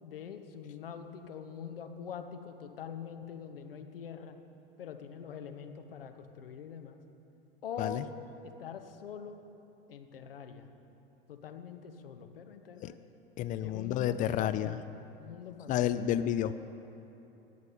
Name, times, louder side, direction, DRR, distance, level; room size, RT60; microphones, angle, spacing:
voice 1, 0.0-4.4 4.8-7.0 7.6-8.1 8.6-9.4 9.9-10.7 11.3-13.0 13.6-14.7 15.2-15.9, left 7 dB, 70° left, 7 dB, 1.1 m, -44 dB
voice 2, 13.4-14.8 15.7-16.5, left 11 dB, 30° left, 12 dB, 0.4 m, -30 dB
17.0 x 6.5 x 8.8 m, 2.9 s
figure-of-eight pair, 80°, 30 cm